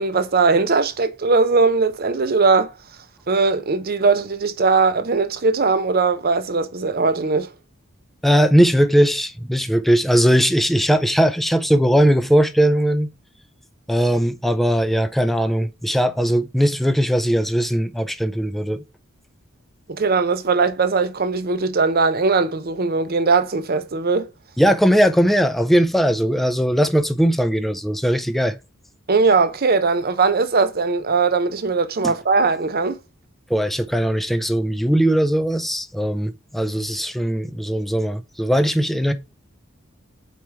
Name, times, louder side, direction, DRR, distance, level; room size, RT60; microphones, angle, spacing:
voice 1, 0.0-2.7 3.3-7.5 19.9-24.3 29.1-33.0, right 4 dB, 50° right, 0.7 m, -19 dB
voice 2, 8.2-13.1 13.9-18.8 24.6-28.6 32.0-32.1 33.5-39.1, equal, ahead, 0.5 m, -19 dB
4.8 x 4.3 x 4.6 m
head